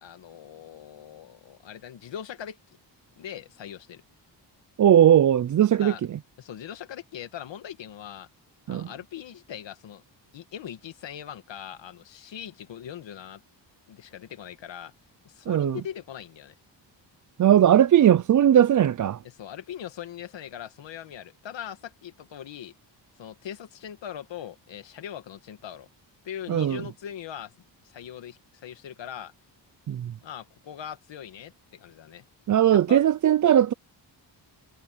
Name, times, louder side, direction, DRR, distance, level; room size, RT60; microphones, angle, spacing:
voice 1, 0.0-2.6 3.2-4.0 5.7-6.0 6.4-8.3 8.7-10.0 10.3-13.4 13.9-14.9 15.3-16.6 19.2-22.7 23.2-25.9 26.2-27.5 27.8-29.3 30.2-32.2 32.7-33.0, left 9 dB, 80° left, 2.0 m, -40 dB
voice 2, 4.8-5.9 8.7-8.9 15.5-15.8 17.4-19.2 26.5-26.8 29.9-30.1 32.5-33.7, right 10 dB, 45° right, 0.5 m, -19 dB
wide cardioid pair, 170°, 43 cm